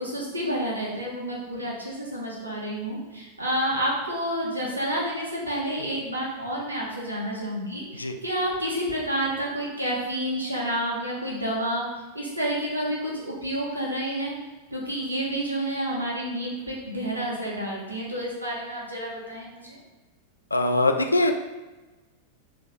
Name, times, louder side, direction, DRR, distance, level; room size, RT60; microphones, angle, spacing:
voice 1, 0.0-11.9 12.1-14.3 14.7-19.8, equal, 80° right, -3 dB, 1.2 m, -29 dB
voice 2, 20.5-21.3, left 2 dB, 80° left, 6 dB, 0.4 m, -22 dB
4.6 x 3.0 x 3.7 m, 1.2 s
figure-of-eight pair, 90°, 0 cm